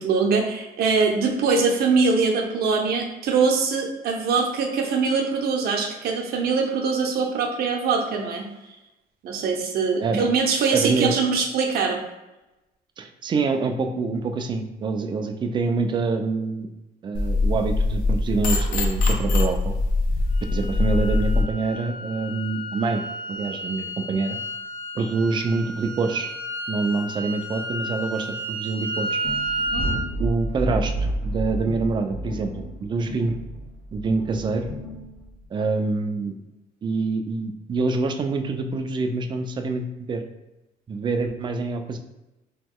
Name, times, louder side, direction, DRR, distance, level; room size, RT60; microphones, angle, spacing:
voice 1, 0.0-8.4 9.2-12.0 25.0-25.1 29.7-29.9, right 4 dB, 70° right, 1 dB, 0.7 m, -23 dB
voice 2, 10.7-11.1 13.0-16.7 17.0-19.7 20.5-23.0 23.3-24.4 25.0-26.3 26.7-29.2 30.2-30.9 31.2-33.4 33.9-34.6 35.5-36.4 36.8-40.2 40.9-42.0, right 4 dB, 30° right, 6 dB, 0.3 m, -26 dB
sound 1, 17.1-21.4, left 2 dB, 60° left, 0.6 m, -22 dB
sound 2, 20.3-30.0, right 1 dB, 35° left, 1.1 m, -32 dB
sound 3, 29.2-35.4, right 1 dB, 90° left, 1.0 m, -30 dB
3.0 x 2.3 x 3.6 m, 1.0 s
cardioid pair, 130°, 16 cm